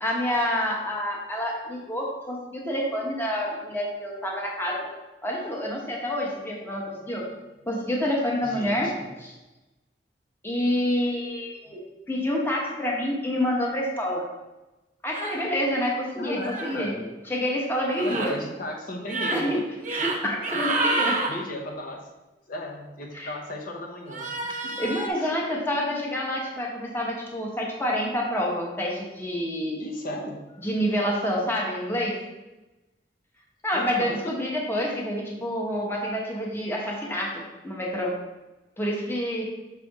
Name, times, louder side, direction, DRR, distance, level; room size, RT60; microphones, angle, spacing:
voice 1, 0.0-4.9 5.2-7.2 7.7-8.9 9.2-9.3 10.4-11.8 12.1-14.3 15.0-16.9 17.3-18.3 19.3-19.6 19.9-21.2 23.1-23.3 24.5-29.8 30.6-32.1 33.6-38.1 38.8-39.4, equal, 15° left, -3 dB, 1.1 m, -28 dB
voice 2, 8.4-9.1 16.2-17.1 18.0-19.6 20.2-20.3 21.3-22.0 22.5-24.7 25.2-25.3 29.8-30.4 33.7-34.3, left 1 dB, 55° left, -1 dB, 0.9 m, -35 dB
sound 1, 15.1-15.4 16.4-16.7 17.9-18.3 19.0-19.4 19.8-20.2 20.4-21.3 24.1-25.1, right 2 dB, 45° right, 0.9 m, -28 dB
6.4 x 3.4 x 4.8 m, 1.1 s
head